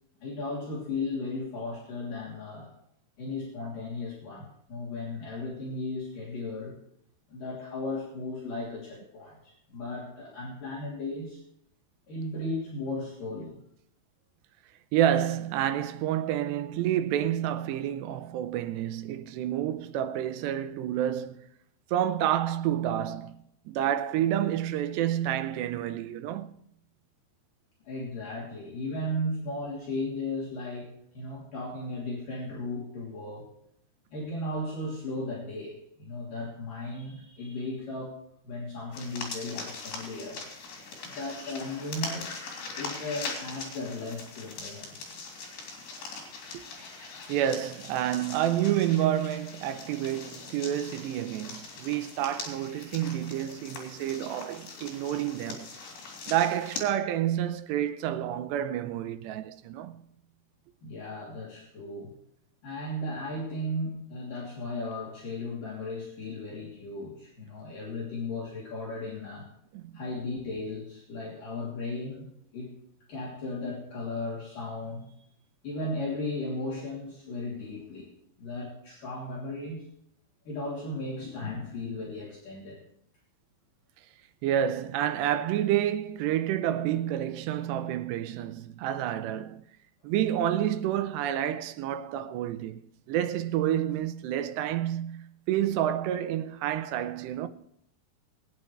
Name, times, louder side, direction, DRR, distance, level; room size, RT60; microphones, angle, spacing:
voice 1, 0.2-2.7 3.2-6.8 7.3-11.4 12.1-13.6 27.8-33.5 34.1-38.2 38.4-40.4 41.0-42.5 42.7-45.1 60.8-62.1 62.6-69.5 69.9-72.3 72.5-72.7 73.1-75.2 75.6-78.1 78.4-79.8 80.5-82.8, left 2 dB, 55° left, 4.5 m, -36 dB
voice 2, 14.9-21.5 21.9-23.4 23.7-26.5 46.5-55.7 56.3-60.0 69.7-69.9 84.4-89.6 90.0-92.8 93.1-97.5, right 11 dB, 85° right, 3.0 m, -29 dB
sound 1, 38.9-56.8, left 4 dB, 80° left, 5.3 m, -41 dB
21.0 x 10.5 x 3.3 m
omnidirectional pair, 4.8 m